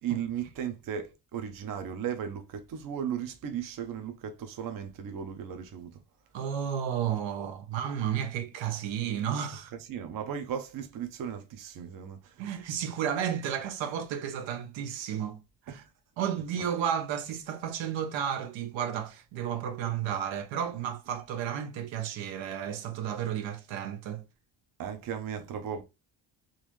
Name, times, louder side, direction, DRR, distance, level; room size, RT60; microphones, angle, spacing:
voice 1, 0.0-6.0 9.8-12.4 15.7-15.8 24.8-25.8, right 8 dB, 50° right, 0.7 m, -36 dB
voice 2, 6.3-9.7 12.4-15.4 15.7-15.8 16.2-24.2, right 9 dB, 90° right, 1.0 m, -32 dB
3.9 x 2.6 x 3.0 m
cardioid pair, 150°, 44 cm